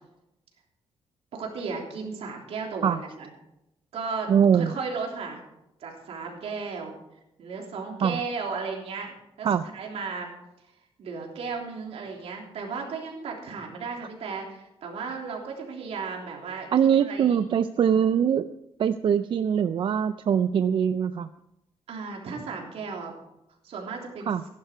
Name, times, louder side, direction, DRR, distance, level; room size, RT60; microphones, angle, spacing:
voice 1, 1.3-3.3 3.9-5.4 5.8-7.0 7.4-9.5 9.7-10.3 11.0-17.4 21.9-23.2 23.6-24.3, right 4 dB, 75° right, 0 dB, 3.4 m, -35 dB
voice 2, 4.3-4.7 8.0-8.2 9.4-9.6 16.7-18.5 18.8-21.3 24.3-24.4, right 8 dB, 50° right, 12 dB, 0.4 m, -22 dB
15.5 x 11.5 x 4.5 m, 0.87 s
wide cardioid pair, 155°, 11 cm